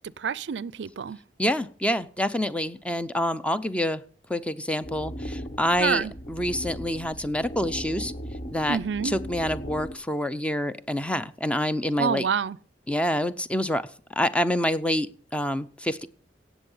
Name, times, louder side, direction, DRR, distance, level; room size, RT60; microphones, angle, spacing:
voice 1, 0.2-1.2 5.8-6.1 8.7-9.1 12.0-12.6, right 6 dB, 85° right, 0.5 m, -27 dB
voice 2, 1.4-4.0 4.3-8.1 8.5-8.8 9.0-12.3 12.9-13.8 14.1-15.1 15.3-16.1, left 1 dB, 5° left, 0.6 m, -27 dB
sound 1, 4.8-9.9, equal, 40° left, 1.0 m, -37 dB
17.0 x 7.2 x 5.5 m
head